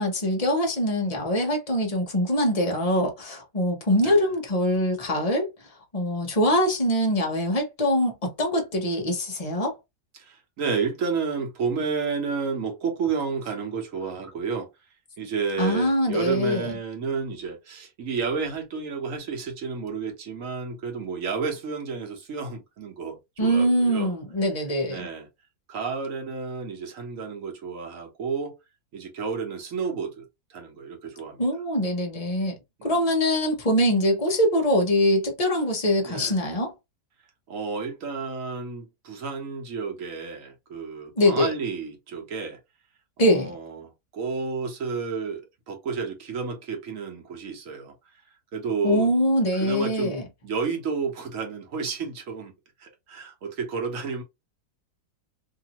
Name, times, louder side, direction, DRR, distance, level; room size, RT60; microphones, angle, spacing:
voice 1, 0.0-5.5 5.9-9.7 15.6-16.7 23.4-25.1 31.4-32.6 32.8-36.7 41.2-41.5 43.2-43.5 48.8-50.2, equal, 30° left, 0.7 m, -23 dB
voice 2, 10.1-14.7 15.2-24.1 24.9-25.3 25.7-28.5 28.9-30.2 30.5-31.4 32.8-33.1 36.0-36.4 37.5-42.6 43.2-45.4 45.7-47.9 48.5-49.1 49.5-50.2 50.4-52.5 52.8-54.2, right 5 dB, 55° right, 1.3 m, -31 dB
2.9 x 2.6 x 2.9 m
omnidirectional pair, 1.8 m